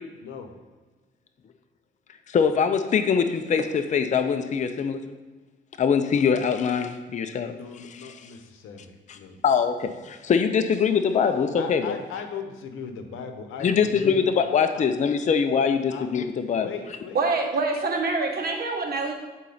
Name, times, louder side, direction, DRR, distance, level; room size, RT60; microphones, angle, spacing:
voice 1, 0.2-0.5 6.8-6.9 7.4-9.4 11.6-14.2 14.7-14.9 15.9-16.1 16.6-17.5, left 6 dB, 85° left, 7 dB, 0.8 m, -38 dB
voice 2, 2.3-5.0 5.8-7.5 9.4-9.9 10.2-11.9 13.6-16.7, left 6 dB, 40° left, 8 dB, 0.5 m, -23 dB
voice 3, 17.1-19.1, right 3 dB, 50° right, 1 dB, 1.4 m, -25 dB
8.2 x 4.2 x 3.9 m, 1.3 s
cardioid pair, 90°, 20 cm